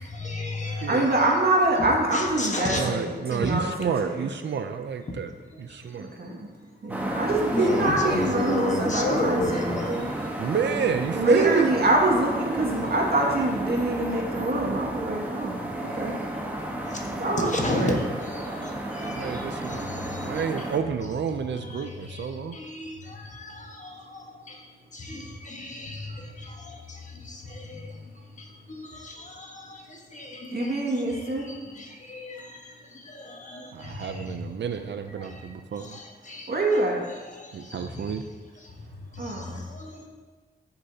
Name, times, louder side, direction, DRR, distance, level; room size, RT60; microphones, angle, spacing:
voice 1, 0.0-1.2 2.1-2.9 3.4-3.5 6.3-6.4 7.5-10.0 16.9-17.1 17.5-20.4 21.5-28.0 28.4-30.8 31.1-34.4 35.2-35.5 35.8-36.9 37.2-38.2 38.6-38.7 39.1-40.1, left 2 dB, 45° left, 1 dB, 1.3 m, -34 dB
voice 2, 0.7-4.2 6.0-6.5 6.8-10.1 10.5-10.6 11.1-16.2 17.1-18.0 30.5-31.5 36.5-37.0 39.2-39.6, right 2 dB, 60° right, -2 dB, 2.0 m, -25 dB
voice 3, 2.7-5.3 5.6-6.1 6.9-7.1 10.4-11.7 19.0-22.6 33.7-36.0 37.5-38.2, right 7 dB, 80° right, 7 dB, 0.5 m, -30 dB
sound 1, 6.9-20.8, right 1 dB, 10° right, 1.2 m, -32 dB
13.5 x 6.8 x 2.8 m, 1.4 s
wide cardioid pair, 105°, 18 cm